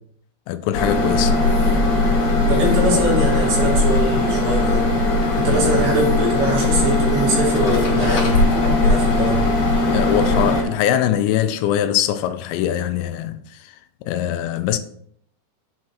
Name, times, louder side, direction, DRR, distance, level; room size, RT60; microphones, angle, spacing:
voice 1, 0.5-1.4 5.5-5.7 9.9-13.8 14.0-14.8, left 10 dB, 85° left, 2.7 m, -22 dB
sound 1, 0.7-10.6, left 2 dB, 50° left, 3.6 m, -19 dB
voice 2, 2.5-4.9 5.3-8.4 8.8-9.4, right 1 dB, 75° right, 4.5 m, -22 dB
8.5 x 4.5 x 4.3 m
omnidirectional pair, 5.2 m